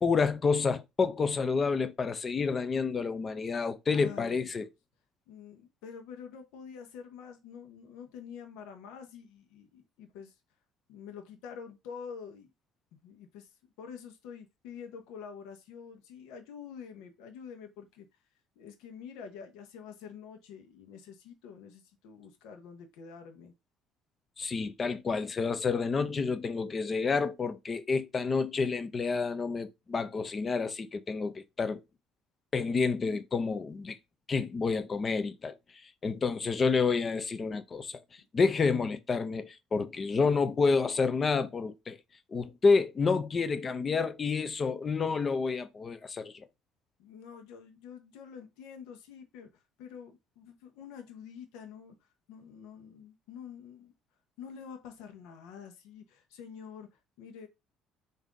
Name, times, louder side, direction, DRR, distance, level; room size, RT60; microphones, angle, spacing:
voice 1, 0.0-4.7 24.4-31.8 32.5-34.0 34.3-35.5 36.0-38.0 38.3-42.0 42.3-46.5, left 4 dB, 30° left, 0.5 m, -29 dB
voice 2, 3.9-4.7 5.3-10.3 10.9-12.5 12.9-13.5 13.8-18.1 18.6-23.5 47.0-52.0 52.3-53.9 54.4-56.9 57.2-57.5, left 7 dB, 85° left, 0.8 m, -47 dB
3.6 x 2.6 x 3.7 m
cardioid pair, 110°, 0 cm